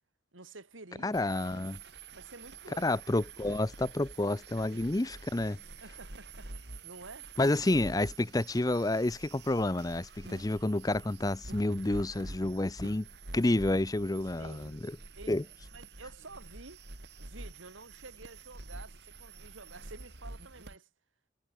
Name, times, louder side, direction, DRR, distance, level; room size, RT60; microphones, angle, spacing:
voice 1, 0.3-1.7 2.1-3.0 4.7-4.8 5.8-6.5 6.8-7.3 14.4-14.8 15.2-15.3 15.7-16.8 17.2-20.9, right 3 dB, 90° right, 2.7 m, -50 dB
voice 2, 1.0-1.8 2.8-5.6 7.4-13.1 13.3-15.0 15.3-15.4, left 2 dB, 20° left, 0.5 m, -29 dB
sound 1, 1.1-20.8, right 3 dB, 55° right, 2.8 m, -48 dB
head